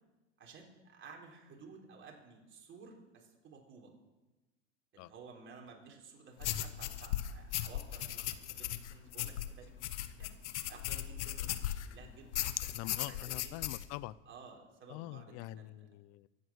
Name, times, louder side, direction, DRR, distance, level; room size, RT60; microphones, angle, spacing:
voice 1, 0.4-3.9 4.9-9.7 10.2-10.4 10.7-12.7 13.0-13.6 14.3-15.8, right 5 dB, 35° right, 4.0 m, -55 dB
sound 1, 6.4-11.9 12.3-13.9, left 12 dB, 75° left, 1.2 m, -37 dB
voice 2, 12.7-14.2 14.9-16.3, left 17 dB, 45° left, 0.6 m, -44 dB
23.5 x 8.7 x 6.4 m
hypercardioid pair, 110°, 35 cm